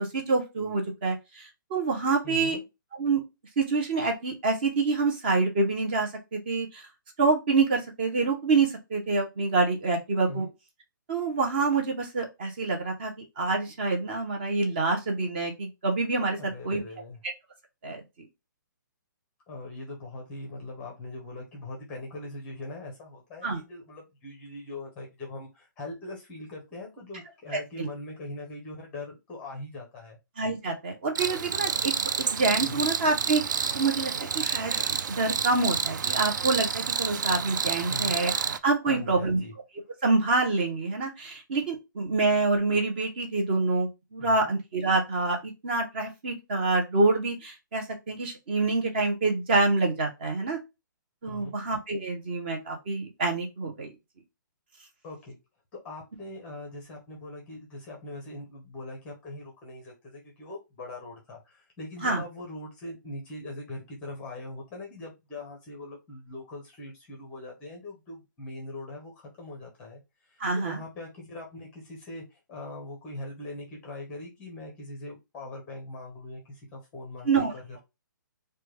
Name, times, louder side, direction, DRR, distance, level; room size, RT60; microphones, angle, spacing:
voice 1, 0.0-2.6 2.9-3.2 3.6-6.9 7.2-10.5 11.1-16.8 17.8-18.0 23.4-23.6 27.5-27.9 30.4-31.9 32.2-38.3 38.6-39.4 40.0-50.6 51.2-53.9 62.0-62.2 70.4-70.8 77.2-77.5, right 3 dB, 30° right, 2 dB, 0.6 m, -27 dB
voice 2, 2.2-2.6 10.3-10.5 16.3-17.2 19.5-30.2 32.6-32.8 37.9-38.2 38.9-39.5 44.2-44.5 51.3-51.6 55.0-55.4 55.7-77.8, left 2 dB, 10° left, 0 dB, 0.6 m, -41 dB
Cricket, 31.2-38.6, right 7 dB, 65° right, 0.4 m, -29 dB
3.2 x 2.2 x 3.0 m, 0.24 s
hypercardioid pair, 170°, 11 cm